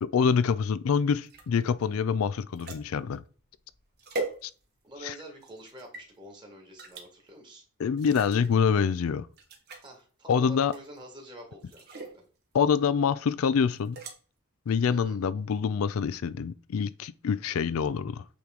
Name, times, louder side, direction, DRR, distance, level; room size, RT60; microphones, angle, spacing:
voice 1, 0.0-3.2 4.4-4.5 5.0-5.1 7.8-9.3 10.3-10.7 12.5-14.0 14.7-18.2, left 6 dB, 70° left, 0.4 m, -26 dB
sound 1, 1.2-5.0 5.4-6.1 6.8-7.1 7.9-8.5 9.0-9.1 9.3-9.9 10.7-11.1 11.6-12.2 13.7-14.2, right 2 dB, 45° right, 1.4 m, -40 dB
voice 2, 4.8-7.6 9.7-12.2 14.9-15.2, right 1 dB, 20° right, 2.0 m, -47 dB
8.4 x 3.1 x 3.7 m
head